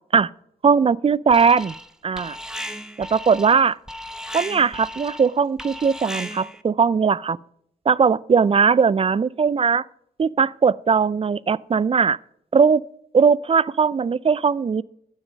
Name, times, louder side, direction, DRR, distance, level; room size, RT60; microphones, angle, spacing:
voice 1, 0.6-1.7 2.0-2.4 3.0-3.8 4.3-7.4 7.9-9.8 10.2-12.2 12.5-12.8 13.1-14.8, right 5 dB, 35° right, 0.4 m, -19 dB
Alarm, 1.3-1.9 2.2-6.6, equal, 5° right, 0.9 m, -35 dB
9.8 x 7.1 x 5.2 m
cardioid pair, 55°, 17 cm